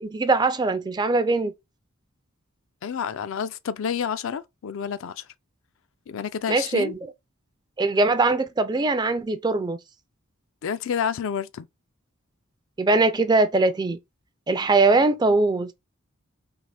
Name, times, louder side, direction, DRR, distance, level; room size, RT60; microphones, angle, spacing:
voice 1, 0.0-1.5 6.5-7.0 7.8-9.8 12.8-14.0 14.5-15.7, right 3 dB, 20° right, 0.4 m, -21 dB
voice 2, 2.8-5.2 6.1-6.9 10.6-11.7, left 7 dB, 60° left, 0.4 m, -29 dB
3.9 x 2.9 x 3.3 m
head